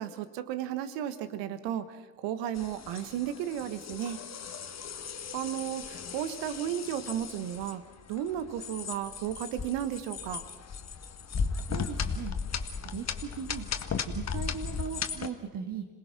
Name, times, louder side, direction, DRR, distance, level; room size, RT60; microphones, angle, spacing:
voice 1, 0.0-4.2 5.3-7.8 8.1-10.4, right 10 dB, 70° right, 12 dB, 1.5 m, -34 dB
sound 1, 2.5-15.3, left 6 dB, 35° left, 1.5 m, -36 dB
voice 2, 11.7-12.3 12.9-13.7 14.1-15.9, right 7 dB, 45° right, 5 dB, 1.9 m, -38 dB
26.5 x 19.0 x 6.0 m, 1.3 s
hypercardioid pair, 60°, 44 cm